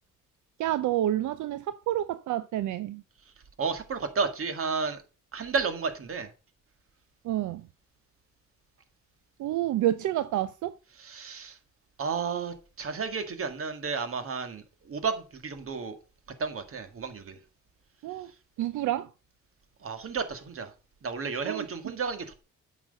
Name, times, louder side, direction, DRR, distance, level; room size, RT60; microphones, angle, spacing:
voice 1, 0.6-3.0 7.2-7.7 9.4-10.7 18.0-18.3 18.6-19.1 21.5-21.9, right 13 dB, 75° right, 0.6 m, -29 dB
voice 2, 3.6-5.0 5.3-6.3 11.0-11.6 12.0-16.0 16.4-17.4 19.8-20.7 21.0-22.4, right 5 dB, 45° right, 1.9 m, -32 dB
8.9 x 6.1 x 5.4 m
cardioid pair, 90°, 30 cm